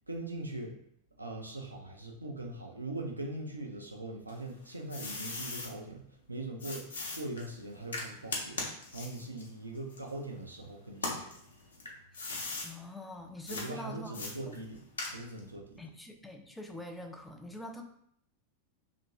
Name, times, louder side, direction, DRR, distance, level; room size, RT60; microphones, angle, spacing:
voice 1, 0.1-0.8 1.2-8.6 8.9-11.3 13.5-15.8, right 2 dB, 80° right, 1 dB, 0.4 m, -41 dB
sound 1, 4.3-5.7 6.6-10.5 10.9-12.7 13.5-13.7 14.1-15.5, left 3 dB, 70° left, 0.6 m, -39 dB
voice 2, 12.6-14.6 15.8-17.8, left 1 dB, 5° left, 4 dB, 0.4 m, -45 dB
2.8 x 2.5 x 2.9 m, 0.68 s
figure-of-eight pair, 90°, 0 cm